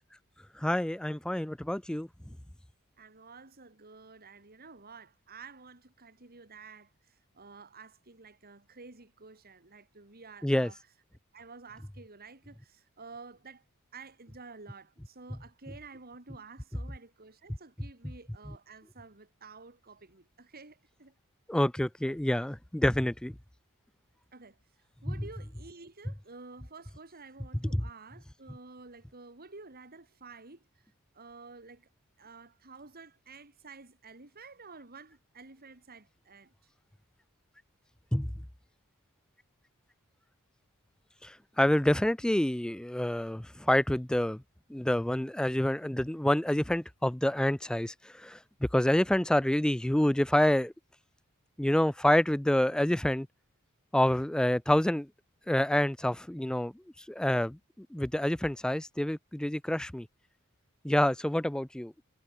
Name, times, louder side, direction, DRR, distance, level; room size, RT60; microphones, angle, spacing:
voice 1, 0.6-2.1 10.4-10.7 18.5-18.6 21.5-23.3 25.1-25.2 27.7-27.8 38.1-38.3 41.2-44.4 44.7-48.4 48.7-50.7 51.6-53.3 53.9-55.1 55.5-56.7 57.1-60.1 60.8-61.9, left 1 dB, 5° left, 0.3 m, -27 dB
voice 2, 3.0-10.8 11.3-13.6 13.9-21.1 22.1-22.2 24.3-24.6 25.0-30.7 31.1-31.9 32.2-36.5, right 4 dB, 45° right, 2.9 m, -51 dB
head